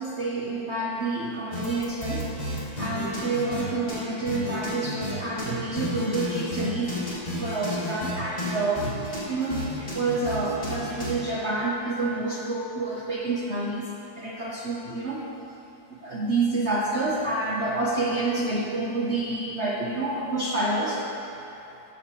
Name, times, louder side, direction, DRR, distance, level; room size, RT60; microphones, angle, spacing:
voice 1, 0.0-7.0 7.3-13.9 14.1-15.3 15.9-21.4, right 2 dB, 45° right, -4 dB, 0.9 m, -28 dB
sound 1, 1.5-3.6 3.9-4.0 4.3-5.1 5.4-5.5 5.7-8.1 8.4-11.1, left 1 dB, 30° left, 2.4 m, -32 dB
13.5 x 12.5 x 3.1 m, 3.0 s
omnidirectional pair, 2.1 m